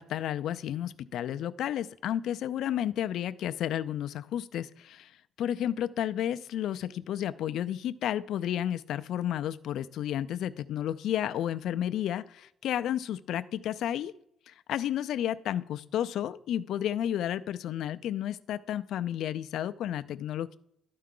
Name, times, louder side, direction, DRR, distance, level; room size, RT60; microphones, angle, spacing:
voice 1, 0.0-5.1 5.4-14.1 14.5-20.6, left 11 dB, 80° left, 12 dB, 0.4 m, -32 dB
12.5 x 4.7 x 3.8 m, 0.74 s
cardioid pair, 90°, 0 cm